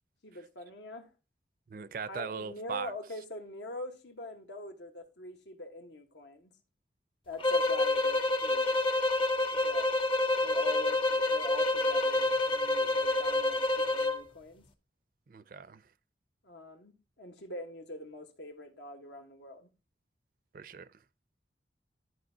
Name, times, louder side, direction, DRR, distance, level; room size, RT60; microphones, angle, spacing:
voice 1, 0.2-1.1 2.1-6.5 7.3-8.7 9.5-9.9 10.4-14.7 16.4-19.7, left 1 dB, 80° left, 1.3 m, -44 dB
voice 2, 1.7-2.9 15.3-15.8 20.5-20.9, right 5 dB, 50° right, 0.4 m, -39 dB
sound 1, 7.4-14.2, left 2 dB, 30° left, 0.5 m, -28 dB
12.5 x 4.6 x 2.7 m
head